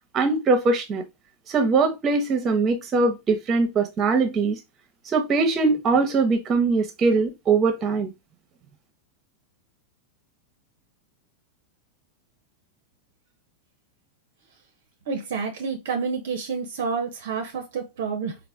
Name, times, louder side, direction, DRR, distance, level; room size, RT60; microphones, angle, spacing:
voice 1, 0.1-1.0 1.5-4.6 5.1-8.1, right 4 dB, 30° right, 0.8 m, -21 dB
voice 2, 15.1-18.4, right 5 dB, 55° right, 0.6 m, -29 dB
4.1 x 2.1 x 3.4 m
figure-of-eight pair, 90°, 0 cm